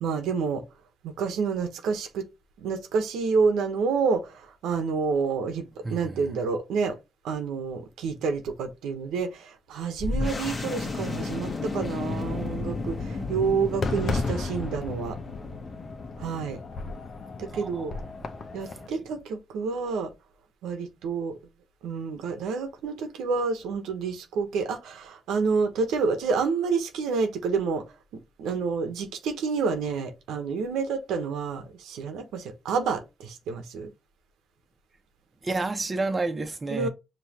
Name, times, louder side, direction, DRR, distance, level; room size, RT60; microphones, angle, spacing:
voice 1, 0.0-0.6 1.0-2.3 2.6-7.0 7.2-15.2 16.2-16.6 17.4-17.9 18.5-20.1 20.6-21.4 21.8-27.8 28.1-33.9 36.7-36.9, right 5 dB, 90° right, 1.0 m, -28 dB
voice 2, 5.8-6.3 17.5-18.3 18.6-18.8 35.4-36.9, right 3 dB, 30° right, 1.0 m, -31 dB
sound 1, 10.0-19.2, left 3 dB, 40° left, 1.4 m, -34 dB
Fireworks, 13.8-18.9, left 3 dB, 55° left, 0.9 m, -34 dB
5.3 x 3.0 x 2.9 m
cardioid pair, 65°, 0 cm